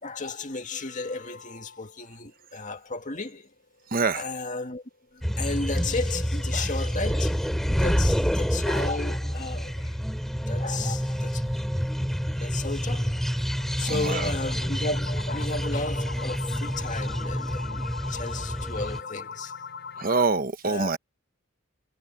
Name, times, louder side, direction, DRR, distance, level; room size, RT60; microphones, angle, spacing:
voice 1, 0.0-3.5 4.1-4.8 5.1-10.0 10.5-11.4 12.4-13.4 13.8-19.6 20.6-20.9, left 3 dB, 35° left, 2.1 m, -34 dB
sound 1, 0.6-2.1 2.5-2.6 3.0-3.1 3.5-3.6 8.4-20.2, left 5 dB, 55° left, 7.2 m, -42 dB
voice 2, 3.9-4.3 13.8-14.2 20.0-21.0, right 3 dB, 40° right, 1.1 m, -25 dB
sound 2, 5.2-19.0, equal, ahead, 3.7 m, -28 dB
head